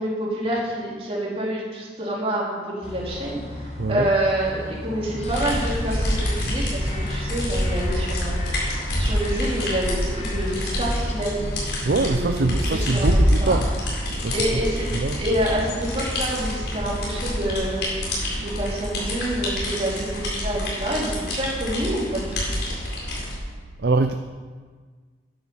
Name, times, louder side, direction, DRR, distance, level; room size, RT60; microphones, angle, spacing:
voice 1, 0.0-8.4 9.0-11.4 11.8-13.6 14.3-14.9 15.2-17.8 18.4-22.5, right 1 dB, 35° right, -5 dB, 3.9 m, -27 dB
sound 1, 2.8-17.4, left 1 dB, 35° left, 1.5 m, -36 dB
voice 2, 3.8-4.1 11.8-13.7 14.2-14.6 14.9-15.2 23.8-24.1, right 3 dB, 60° right, 7 dB, 0.5 m, -23 dB
sound 2, 5.2-23.3, equal, 70° left, 4.5 m, -26 dB
13.5 x 10.5 x 5.6 m, 1.5 s
head